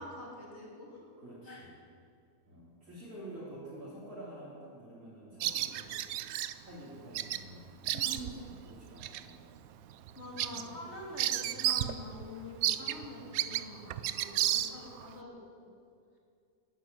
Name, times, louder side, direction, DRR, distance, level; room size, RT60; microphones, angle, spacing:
voice 1, 0.0-1.1 1.4-1.6 7.9-8.3 10.2-15.7, left 2 dB, 40° left, -3 dB, 3.4 m, -46 dB
voice 2, 1.2-1.8 2.5-6.0 6.6-9.6 10.4-10.8, right 1 dB, 50° right, -8 dB, 3.6 m, -48 dB
Bird vocalization bird call bird song, 5.4-6.5 7.1-7.4 7.7-8.5 9.0-9.2 9.7-9.8 10.1-12.0 12.2-12.3 12.6-15.1, right 12 dB, 70° right, 0.9 m, -32 dB
13.0 x 9.0 x 9.6 m, 2.4 s
omnidirectional pair, 1.7 m